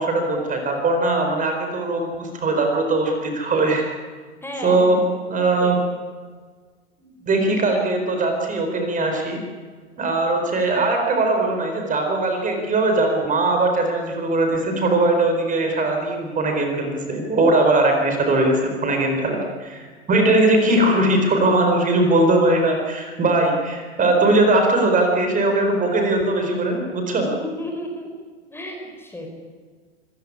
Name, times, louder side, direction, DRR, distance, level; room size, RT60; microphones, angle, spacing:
voice 1, 0.0-3.9 4.6-5.0 5.3-5.8 7.2-9.4 10.0-27.3, right 2 dB, 20° right, 3 dB, 4.6 m, -20 dB
voice 2, 4.4-5.1 5.6-5.8 27.2-28.1 28.5-29.3, left 1 dB, 5° left, 2 dB, 4.6 m, -33 dB
25.5 x 15.5 x 9.9 m, 1.5 s
figure-of-eight pair, 95°, 35 cm